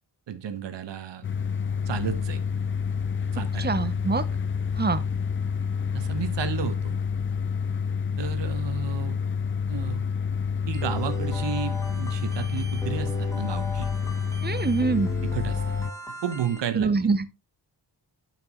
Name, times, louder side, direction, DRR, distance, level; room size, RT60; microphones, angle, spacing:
voice 1, 0.3-1.2 1.9-2.4 3.3-3.7 5.9-7.0 8.2-9.2 9.7-10.0 10.7-13.9 15.3-15.6 16.2-17.1, right 8 dB, 85° right, 1.3 m, -32 dB
sound 1, 1.2-15.9, left 6 dB, 30° left, 0.4 m, -28 dB
voice 2, 3.6-4.2 4.8-5.0 14.4-15.1 16.7-17.3, right 4 dB, 25° right, 0.8 m, -24 dB
sound 2, 10.7-16.6, right 1 dB, 5° left, 2.3 m, -39 dB
10.5 x 6.0 x 3.0 m
wide cardioid pair, 140°, 42 cm